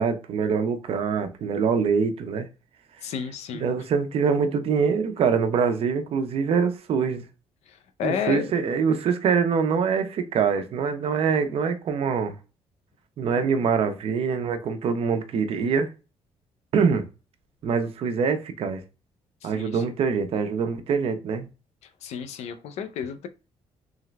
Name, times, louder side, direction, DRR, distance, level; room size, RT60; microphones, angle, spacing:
voice 1, 0.0-2.5 3.5-7.3 8.0-12.3 13.2-15.9 16.7-17.0 17.6-18.8 19.4-21.5, right 6 dB, 65° right, 0.8 m, -24 dB
voice 2, 3.0-3.7 7.7-8.5 19.4-19.8 22.0-23.3, left 7 dB, 80° left, 0.6 m, -31 dB
3.8 x 3.3 x 3.1 m
cardioid pair, 130°, 11 cm